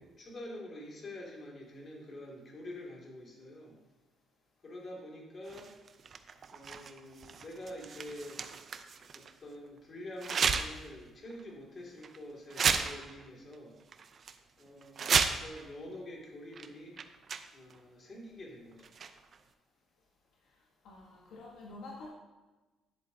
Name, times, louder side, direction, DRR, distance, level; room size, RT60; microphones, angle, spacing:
voice 1, 0.2-3.8 4.6-5.7 6.5-8.4 9.1-13.8 14.6-16.9 17.5-18.9, left 1 dB, 40° left, -1 dB, 2.4 m, -46 dB
sound 1, 5.5-9.3 10.2-10.9 11.3-11.4 12.0-12.2 12.5-13.3 13.5-13.6 13.9-14.3 14.8-15.7 16.5-16.7 17.0-17.8 18.8-19.4, right 6 dB, 50° right, 0.6 m, -33 dB
voice 2, 20.8-22.1, left 2 dB, 70° left, -2 dB, 1.3 m, -47 dB
10.5 x 7.9 x 2.8 m, 1.2 s
cardioid pair, 95°, 0 cm